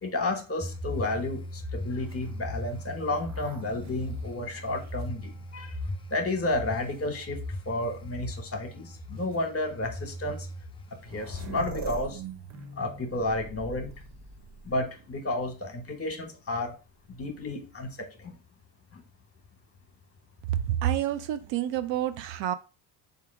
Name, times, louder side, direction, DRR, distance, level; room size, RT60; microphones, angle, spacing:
voice 1, 0.0-5.8 6.1-10.5 11.0-12.2 12.8-13.9 14.6-16.7 17.1-18.4 18.9-19.0, left 2 dB, 30° left, 1.2 m, -32 dB
sound 1, 0.6-11.6, left 1 dB, 10° left, 0.3 m, -39 dB
sound 2, 2.0-5.8 6.5-7.3 8.4-8.5 9.2-9.4 10.5-10.6 10.8-15.3 17.2-17.9, right 3 dB, 35° right, 0.8 m, -44 dB
voice 2, 20.7-22.5, right 11 dB, 65° right, 0.5 m, -28 dB
3.5 x 2.8 x 4.6 m
supercardioid pair, 90°, 49 cm